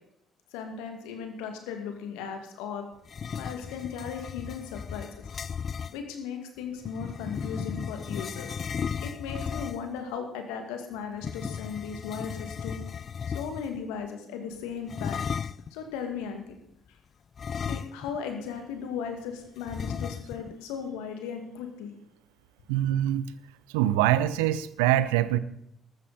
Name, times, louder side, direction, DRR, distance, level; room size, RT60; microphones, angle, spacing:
voice 1, 0.5-2.9 3.4-5.2 5.9-8.5 9.0-12.8 13.3-15.2 15.7-16.6 17.7-21.9, left 6 dB, 80° left, 5 dB, 2.1 m, -37 dB
sound 1, 3.0-6.0 6.8-10.0 11.2-13.8 14.9-15.7 17.4-18.3 18.6-18.7 19.7-20.5, left 7 dB, 50° left, 0.4 m, -35 dB
voice 2, 22.7-23.2 23.7-25.4, right 13 dB, 80° right, 16 dB, 0.6 m, -24 dB
14.0 x 13.5 x 4.2 m, 0.76 s
hypercardioid pair, 50°, 0 cm